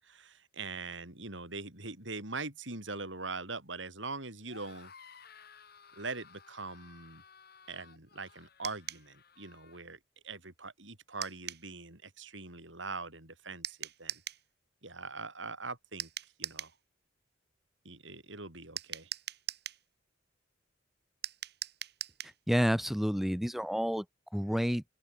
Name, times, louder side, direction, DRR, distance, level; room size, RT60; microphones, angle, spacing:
voice 1, 0.0-4.9 5.9-7.2 7.7-10.0 10.2-14.2 14.8-16.1 16.4-16.7 17.8-19.1, right 3 dB, 70° right, 6.6 m, -42 dB
sound 1, 4.4-9.8, left 6 dB, 55° left, 6.4 m, -57 dB
sound 2, 8.6-9.1 11.2-11.7 13.6-14.4 16.0-16.8 18.8-19.8 21.2-22.4, right 11 dB, 55° right, 3.4 m, -40 dB
voice 2, 22.5-24.0 24.3-24.8, equal, ahead, 0.6 m, -29 dB
open air
head